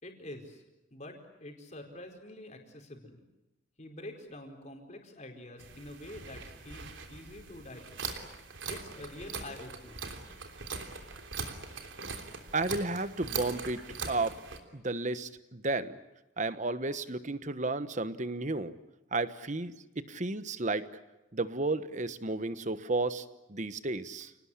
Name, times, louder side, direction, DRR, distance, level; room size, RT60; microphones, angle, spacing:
voice 1, 0.0-0.6 0.9-3.2 3.8-8.1 8.7-10.0, left 1 dB, 35° left, 4 dB, 4.7 m, -46 dB
sound 1, 5.6-14.6, right 4 dB, 80° right, 3.3 m, -41 dB
voice 2, 12.5-13.8 14.1-14.4 14.7-16.0 16.4-18.7 19.1-20.9 21.3-24.3, right 2 dB, 40° right, 13 dB, 1.2 m, -33 dB
28.5 x 19.5 x 9.9 m, 0.98 s
head